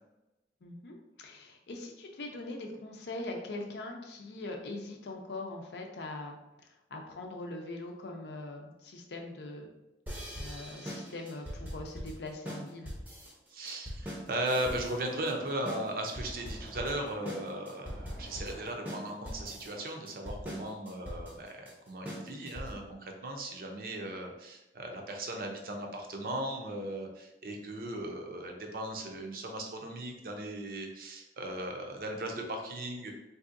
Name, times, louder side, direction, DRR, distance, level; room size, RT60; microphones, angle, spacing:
voice 1, 0.6-6.4 6.9-9.7 10.4-12.9, left 2 dB, 75° left, 2 dB, 0.5 m, -42 dB
sound 1, 10.1-22.9, equal, 10° right, 0.6 m, -42 dB
voice 2, 13.5-33.1, right 1 dB, 55° right, 2 dB, 0.5 m, -37 dB
sound 2, 14.7-21.1, equal, 25° left, 0.9 m, -53 dB
3.6 x 2.7 x 2.5 m, 0.96 s
head